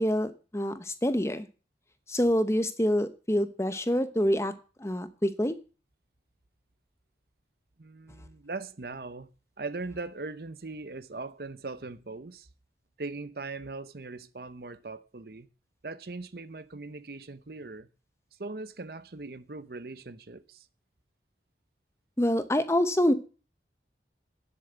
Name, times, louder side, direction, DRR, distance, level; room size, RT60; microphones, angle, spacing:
voice 1, 0.0-1.5 2.1-4.5 4.8-5.6 22.2-23.1, equal, 15° left, 0.8 m, -26 dB
voice 2, 7.8-9.3 9.6-12.5 13.0-15.5 15.8-17.9 18.4-20.7, right 3 dB, 55° right, 0.8 m, -40 dB
10.0 x 7.8 x 7.9 m
head